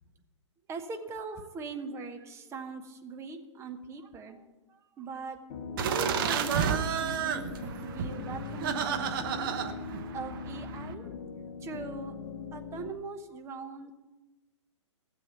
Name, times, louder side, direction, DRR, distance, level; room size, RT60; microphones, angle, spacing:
voice 1, 0.7-5.4 5.7-9.6 10.1-11.1 11.6-12.1 12.5-13.9, right 4 dB, 15° right, 6 dB, 1.1 m, -41 dB
sound 1, 5.5-12.9, left 5 dB, 40° left, 1.3 m, -41 dB
sound 2, 5.8-10.9, right 8 dB, 45° right, 1.0 m, -32 dB
15.5 x 7.7 x 7.0 m, 1.1 s
figure-of-eight pair, 120°, 16 cm